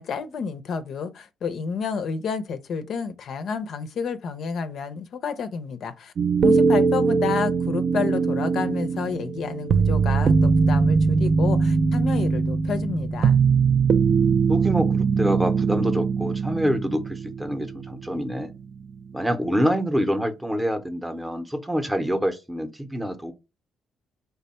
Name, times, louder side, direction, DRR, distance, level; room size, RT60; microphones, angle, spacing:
voice 1, 0.0-6.1 6.4-13.4, left 5 dB, 65° left, 0.5 m, -30 dB
sound 1, 6.2-18.2 18.5-18.6, right 5 dB, 55° right, 0.3 m, -21 dB
voice 2, 14.5-18.5 19.1-23.3, equal, 10° right, 0.6 m, -26 dB
3.3 x 2.2 x 4.1 m
cardioid pair, 90°, 0 cm